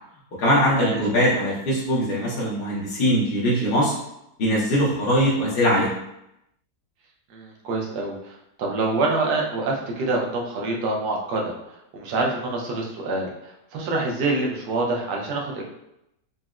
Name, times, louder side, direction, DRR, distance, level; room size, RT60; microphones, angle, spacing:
voice 1, 0.4-3.9 4.4-5.9, equal, 60° left, -6 dB, 0.5 m, -21 dB
voice 2, 7.3-11.5 11.9-15.6, right 2 dB, 75° right, -1 dB, 1.2 m, -26 dB
4.0 x 2.1 x 2.3 m, 0.83 s
omnidirectional pair, 1.8 m